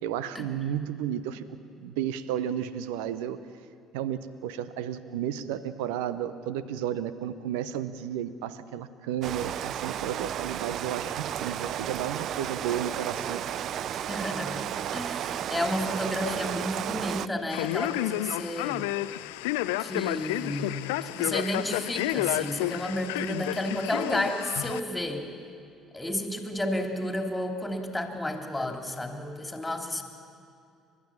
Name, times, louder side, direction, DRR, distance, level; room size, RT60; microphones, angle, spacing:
voice 1, 0.0-1.4 1.8-3.4 3.9-13.4, right 10 dB, 70° right, 14 dB, 0.8 m, -32 dB
Rain, 9.2-17.3, right 10 dB, 50° right, 0.4 m, -33 dB
voice 2, 13.9-14.6 14.9-18.9 19.8-25.3 25.9-30.0, left 1 dB, 10° left, 3 dB, 2.9 m, -31 dB
Male speech man speaking, 17.5-24.8, left 16 dB, 70° left, 0.5 m, -31 dB
30.0 x 12.5 x 7.3 m, 2.5 s
figure-of-eight pair, 55°, 0 cm